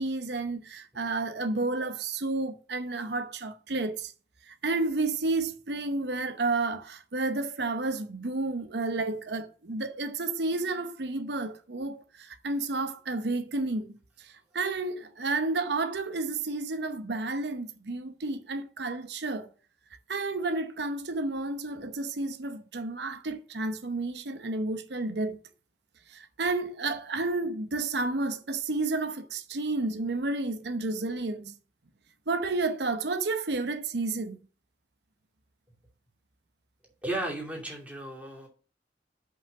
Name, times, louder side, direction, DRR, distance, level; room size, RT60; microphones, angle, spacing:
voice 1, 0.0-4.1 4.5-13.9 14.2-19.5 20.1-25.4 26.1-31.5 32.3-34.4, right 3 dB, 70° right, 0.9 m, -31 dB
voice 2, 37.0-38.5, right 1 dB, 10° right, 2.6 m, -34 dB
5.8 x 5.4 x 6.8 m
head